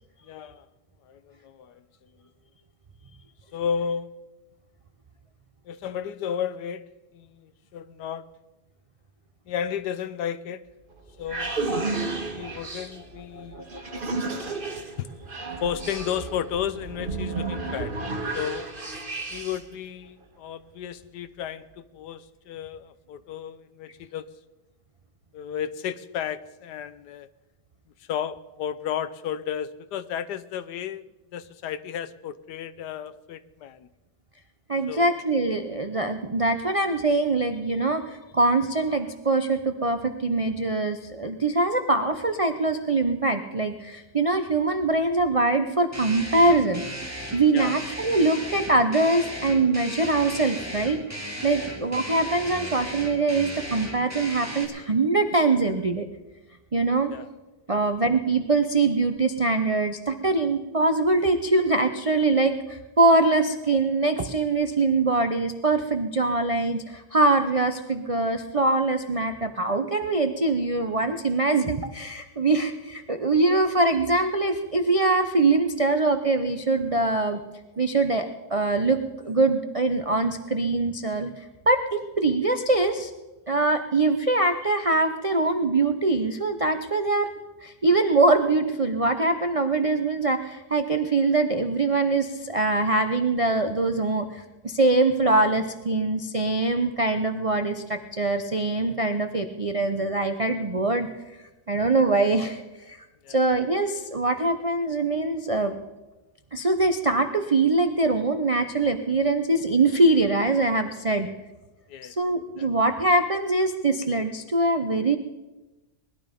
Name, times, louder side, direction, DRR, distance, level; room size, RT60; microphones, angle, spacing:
voice 1, 0.2-0.7 1.0-1.8 3.5-4.1 5.6-6.9 7.1-8.3 9.5-10.6 11.2-11.5 12.3-13.6 14.2-14.6 15.0-15.1 15.6-17.9 18.3-18.7 19.3-24.3 25.3-27.3 28.0-31.1 31.3-33.9 34.9-35.1 47.5-47.8 51.6-51.7 57.1-57.3 57.7-57.8 103.2-103.4 111.2-111.4 111.9-112.1 112.6-112.7, left 8 dB, 75° left, 14 dB, 1.2 m, -33 dB
sound 1, 10.7-19.7, right 3 dB, 30° right, 1.6 m, -32 dB
voice 2, 34.7-46.9 47.3-56.1 56.7-57.1 57.7-77.4 77.8-81.3 81.7-83.1 83.5-87.3 87.6-101.1 101.7-102.6 102.9-103.0 103.3-105.8 106.5-111.3 112.0-115.2, right 2 dB, 50° right, 6 dB, 0.4 m, -23 dB
sound 2, 45.9-54.6, equal, 10° right, 2.5 m, -36 dB
20.0 x 12.0 x 5.2 m, 1.1 s
omnidirectional pair, 1.8 m